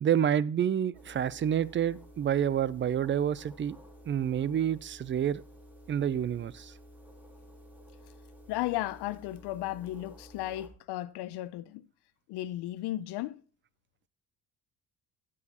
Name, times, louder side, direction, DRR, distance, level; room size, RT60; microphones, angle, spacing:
voice 1, 0.0-3.8 4.1-5.4 5.9-6.7, right 9 dB, 30° right, 0.4 m, -28 dB
sound 1, 0.9-10.7, equal, 5° right, 2.4 m, -53 dB
voice 2, 8.5-11.8 12.3-13.4, left 15 dB, 80° left, 0.6 m, -35 dB
9.9 x 8.0 x 2.9 m
cardioid pair, 95°, 40 cm